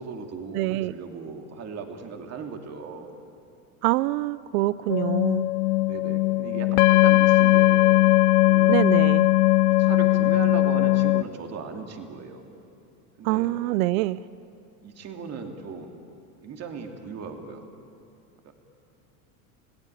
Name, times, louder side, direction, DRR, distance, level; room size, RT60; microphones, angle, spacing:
voice 1, 0.0-3.1 5.8-8.0 8.4-8.7 9.7-12.4 13.2-13.5 14.8-15.9 16.4-17.6 18.4-18.5, right 5 dB, 35° right, 4 dB, 2.6 m, -37 dB
voice 2, 0.5-0.9 3.8-5.5 8.7-9.3 13.2-14.2, right 18 dB, 70° right, 19 dB, 0.6 m, -25 dB
sound 1, 4.9-11.2, left 18 dB, 75° left, 0.6 m, -19 dB
28.5 x 17.5 x 9.1 m, 2.7 s
supercardioid pair, 130°, 44 cm